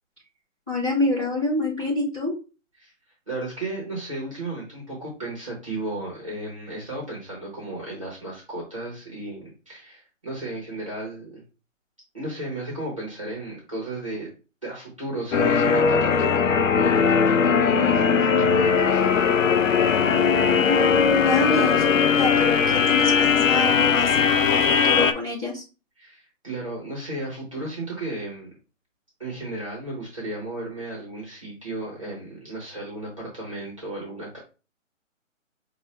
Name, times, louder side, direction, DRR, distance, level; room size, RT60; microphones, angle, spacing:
voice 1, 0.7-2.3 20.5-21.9 22.1-25.6, left 2 dB, 5° left, -9 dB, 1.5 m, -27 dB
voice 2, 3.3-11.4 12.1-14.3 14.6-19.2 26.0-28.6 29.2-34.4, right 2 dB, 25° right, -3 dB, 0.9 m, -34 dB
sound 1, 15.3-25.1, left 6 dB, 70° left, 0.6 m, -19 dB
5.4 x 2.4 x 3.1 m, 0.33 s
hypercardioid pair, 180°, 40 cm